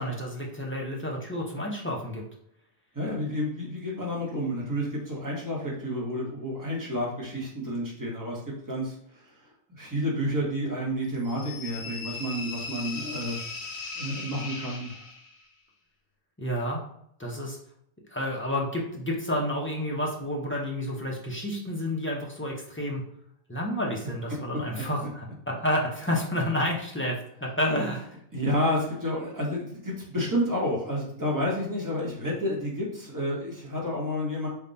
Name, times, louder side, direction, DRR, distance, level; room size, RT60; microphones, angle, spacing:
voice 1, 0.0-2.2 16.4-16.8 17.2-17.6 18.1-23.0 23.5-28.1, left 1 dB, 20° left, -3 dB, 0.3 m, -30 dB
voice 2, 2.9-8.4 8.7-9.3 9.7-13.4 13.9-15.0 24.5-24.6 25.0-25.1 28.3-34.5, equal, 20° right, -4 dB, 1.0 m, -30 dB
sound 1, 11.3-15.4, left 3 dB, 70° left, 0.9 m, -38 dB
3.6 x 2.2 x 3.9 m, 0.70 s
omnidirectional pair, 1.2 m